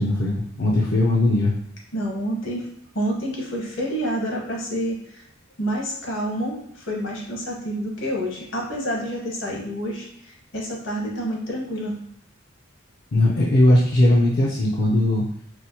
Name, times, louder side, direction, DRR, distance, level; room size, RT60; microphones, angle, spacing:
voice 1, 0.0-1.5 13.1-15.2, left 1 dB, 50° left, -4 dB, 0.4 m, -19 dB
voice 2, 1.9-2.7 2.9-5.2 5.6-12.0, equal, 70° left, -2 dB, 1.1 m, -28 dB
4.2 x 2.0 x 2.7 m, 0.71 s
head